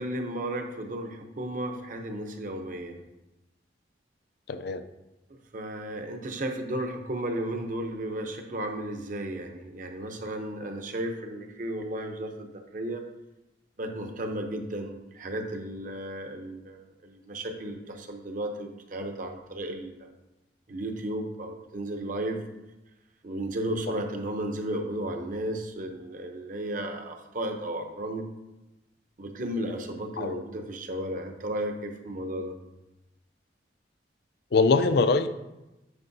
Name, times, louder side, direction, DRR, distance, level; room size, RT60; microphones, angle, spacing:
voice 1, 0.0-3.0 5.5-13.0 13.8-20.1 20.7-22.4 23.2-28.3 29.2-32.5, right 1 dB, 45° right, 4 dB, 0.8 m, -34 dB
voice 2, 4.5-4.8 23.9-24.0 30.2-30.4 34.5-35.3, left 4 dB, 60° left, 10 dB, 0.4 m, -23 dB
9.6 x 5.4 x 2.7 m, 0.99 s
head